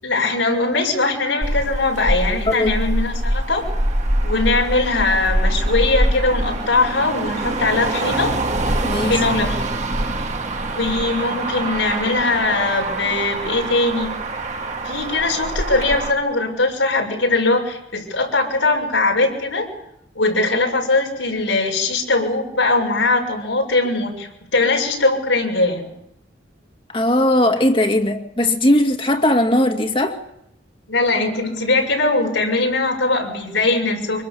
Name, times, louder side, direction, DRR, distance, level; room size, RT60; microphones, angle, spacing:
voice 1, 0.0-3.7 4.2-8.3 9.0-9.6 10.7-14.1 14.8-19.7 20.1-25.9 30.9-34.2, left 3 dB, 85° left, 0 dB, 6.6 m, -20 dB
Motor vehicle (road), 1.4-16.1, right 1 dB, 40° right, 1.8 m, -24 dB
voice 2, 2.5-2.8 8.8-9.2 26.9-30.2, left 1 dB, 25° left, 4 dB, 2.2 m, -18 dB
25.5 x 24.0 x 7.2 m, 0.79 s
head